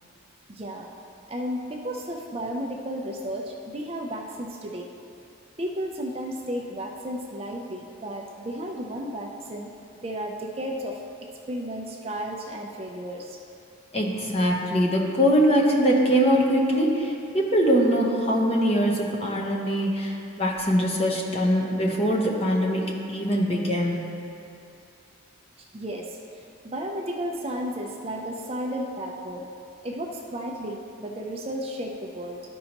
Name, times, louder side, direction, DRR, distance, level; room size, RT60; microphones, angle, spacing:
voice 1, 0.5-0.9 1.3-4.9 5.6-9.7 10.0-11.0 11.5-13.4 25.7-29.4 29.8-32.4, equal, 30° right, 1 dB, 0.5 m, -33 dB
voice 2, 13.9-24.1, equal, 30° left, -2 dB, 0.9 m, -22 dB
13.0 x 5.4 x 2.9 m, 2.6 s
head